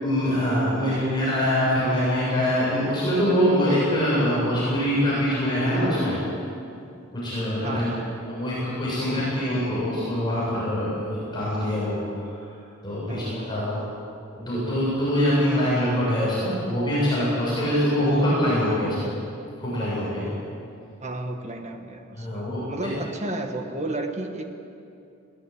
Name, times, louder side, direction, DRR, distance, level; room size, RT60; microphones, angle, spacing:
voice 1, 0.0-6.2 7.1-7.9 8.3-12.0 12.8-13.8 14.3-19.1 19.6-20.3 22.1-22.6, equal, 20° left, -8 dB, 7.3 m, -24 dB
voice 2, 7.6-8.1 13.1-13.5 21.0-24.5, right 2 dB, 35° right, 4 dB, 1.7 m, -33 dB
21.0 x 19.0 x 8.9 m, 2.6 s
head